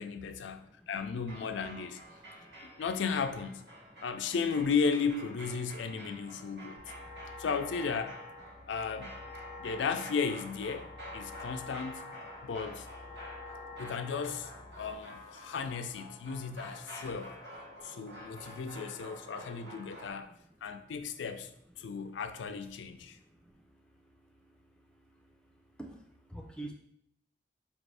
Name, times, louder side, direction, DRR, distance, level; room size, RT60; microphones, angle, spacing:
voice 1, 0.0-2.0 2.6-3.6 4.0-6.8 7.4-8.2 8.7-9.2 9.6-10.9 11.1-12.1 12.4-12.9 13.8-14.5 14.8-17.3 17.8-20.3 20.6-21.5 21.8-23.2, left 5 dB, 85° left, 8 dB, 0.4 m, -35 dB
sound 1, 1.2-20.1, equal, 75° right, 1.2 m, -49 dB
sound 2, 6.8-14.9, left 3 dB, 20° right, 1.1 m, -47 dB
voice 2, 25.8-26.7, right 2 dB, 5° left, 1 dB, 0.4 m, -46 dB
4.8 x 2.5 x 3.3 m, 0.73 s
head